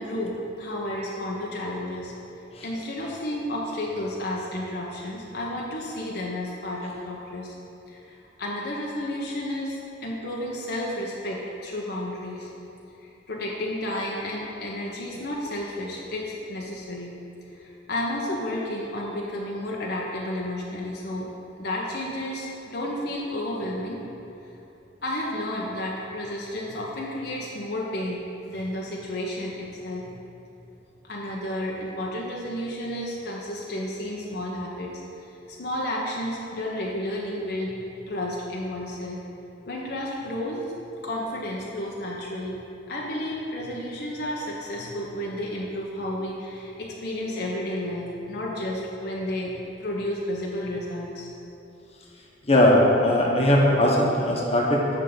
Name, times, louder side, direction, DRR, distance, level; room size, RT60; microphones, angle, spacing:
voice 1, 0.0-2.1 2.6-7.5 7.9-12.5 13.0-17.1 17.5-21.3 21.6-24.1 25.0-30.2 31.0-34.9 35.5-37.8 38.1-39.2 39.7-40.7 41.0-42.6 42.9-51.3, left 1 dB, 60° left, -3 dB, 0.9 m, -32 dB
voice 2, 52.5-55.0, left 1 dB, 35° left, -3 dB, 1.2 m, -19 dB
10.5 x 3.6 x 7.0 m, 2.8 s
head